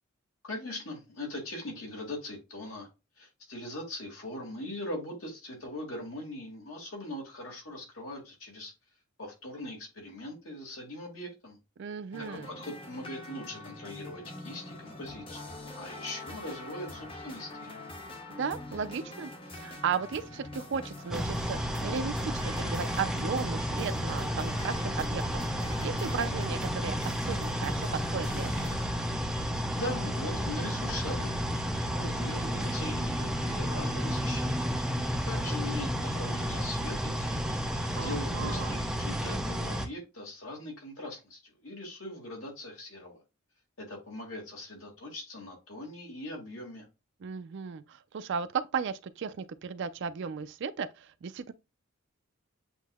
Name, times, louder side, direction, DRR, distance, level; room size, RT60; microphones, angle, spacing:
voice 1, 0.4-2.9 3.2-8.7 9.2-11.6 12.3-15.5 15.8-17.8 29.8-31.4 31.7-34.7 35.3-37.5 38.0-43.2 43.8-46.9, left 1 dB, 75° left, 2.0 m, -41 dB
voice 2, 11.8-12.5 18.3-25.2 25.5-28.7 37.9-38.8 47.2-51.5, right 6 dB, 60° right, 0.4 m, -35 dB
sound 1, 12.1-28.9, left 2 dB, 25° left, 0.8 m, -44 dB
sound 2, 21.1-39.9, equal, 5° right, 0.5 m, -32 dB
7.9 x 2.7 x 2.3 m
head